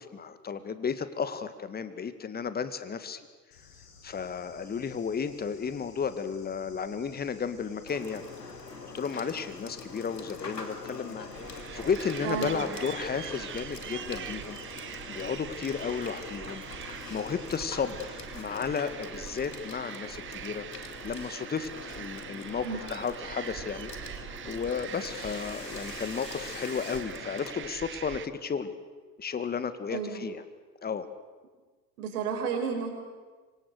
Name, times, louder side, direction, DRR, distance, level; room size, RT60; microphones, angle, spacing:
voice 1, 0.0-3.2 4.0-8.2 8.8-14.6 15.1-20.7 21.0-28.7 29.2-30.4 30.8-31.1, left 6 dB, 20° left, 11 dB, 2.0 m, -33 dB
Bird / Insect, 3.5-18.2, left 5 dB, 65° left, 6.9 m, -55 dB
Water / Water tap faucet / Sink (filling or washing), 7.9-27.5, left 3 dB, 90° left, 3.0 m, -44 dB
sound 1, 11.3-28.3, right 10 dB, 25° right, 1.1 m, -43 dB
voice 2, 12.2-12.7 22.6-23.0 29.9-30.2 32.0-32.9, right 6 dB, 65° right, 3 dB, 5.7 m, -32 dB
26.5 x 25.0 x 6.7 m, 1.4 s
figure-of-eight pair, 85°, 48 cm